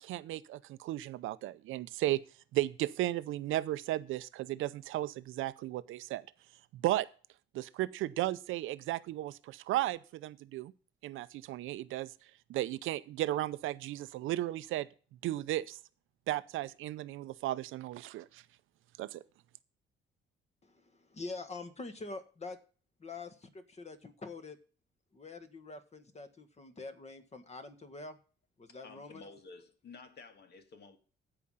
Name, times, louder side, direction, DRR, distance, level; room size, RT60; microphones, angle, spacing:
voice 1, 0.0-2.2 2.5-6.2 6.7-7.1 7.5-10.7 11.0-12.1 12.5-14.9 15.2-15.8 16.3-18.4 19.0-19.2, right 15 dB, 85° right, 0.6 m, -35 dB
voice 2, 20.6-22.6 23.0-24.6 25.1-28.2 28.6-29.3, left 3 dB, 35° left, 1.7 m, -45 dB
voice 3, 28.7-31.0, left 4 dB, 55° left, 2.0 m, -52 dB
15.0 x 5.1 x 5.6 m
cardioid pair, 90°, 20 cm